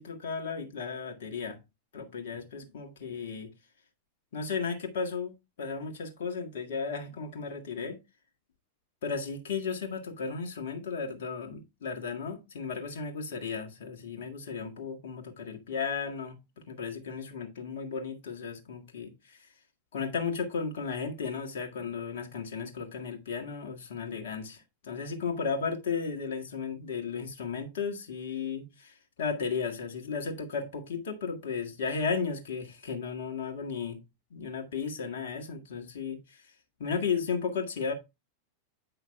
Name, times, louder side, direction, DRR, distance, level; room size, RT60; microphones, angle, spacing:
voice 1, 0.0-1.6 1.9-3.5 4.3-8.0 9.0-16.4 16.7-19.4 19.9-34.0 34.3-36.4 36.8-37.9, left 5 dB, 60° left, 1.7 m, -34 dB
9.1 x 5.7 x 3.3 m
figure-of-eight pair, 90°, 0 cm